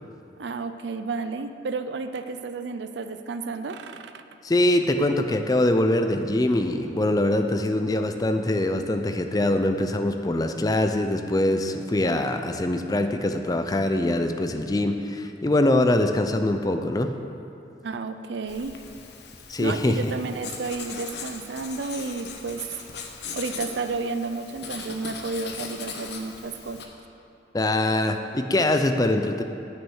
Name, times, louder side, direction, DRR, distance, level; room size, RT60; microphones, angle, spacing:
voice 1, 0.4-4.2 17.8-18.7 19.6-22.6 23.3-26.8, right 4 dB, 75° right, 9 dB, 0.5 m, -32 dB
voice 2, 4.4-17.1 19.5-20.1 27.5-29.4, left 1 dB, 20° left, 7 dB, 0.4 m, -23 dB
Writing, 18.5-26.9, left 5 dB, 65° left, 0.9 m, -39 dB
8.9 x 6.5 x 6.4 m, 2.7 s
head